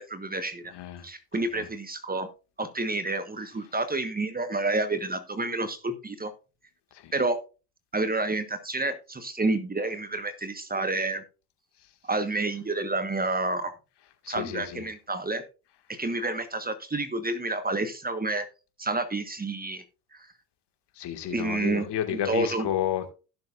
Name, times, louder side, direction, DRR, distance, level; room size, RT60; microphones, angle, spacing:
voice 1, 0.0-0.7 1.0-2.3 2.6-6.3 7.1-7.4 7.9-11.2 12.0-13.7 14.3-15.4 15.9-18.4 18.8-19.8 20.1-20.3 21.3-22.7, right 2 dB, 20° right, 9 dB, 1.4 m, -29 dB
voice 2, 0.7-1.0 1.5-1.6 7.0-7.1 14.2-14.8 21.0-23.1, left 11 dB, 55° left, 7 dB, 2.1 m, -31 dB
16.0 x 6.9 x 2.5 m, 0.33 s
hypercardioid pair, 65°, 49 cm